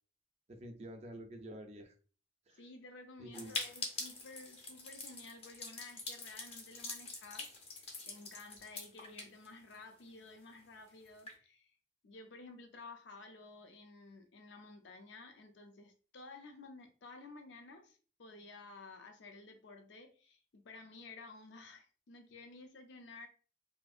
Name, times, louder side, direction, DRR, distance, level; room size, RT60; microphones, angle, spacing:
voice 1, 0.5-1.9 2.5-2.6 3.2-3.5, right 1 dB, 35° right, 0.4 m, -48 dB
voice 2, 2.5-11.7 12.0-23.3, left 3 dB, 70° left, 0.5 m, -53 dB
sound 1, 3.3-10.0 10.3-10.4 10.6-10.7 11.1-11.3, left 3 dB, 35° left, 0.6 m, -44 dB
2.7 x 2.5 x 2.3 m
head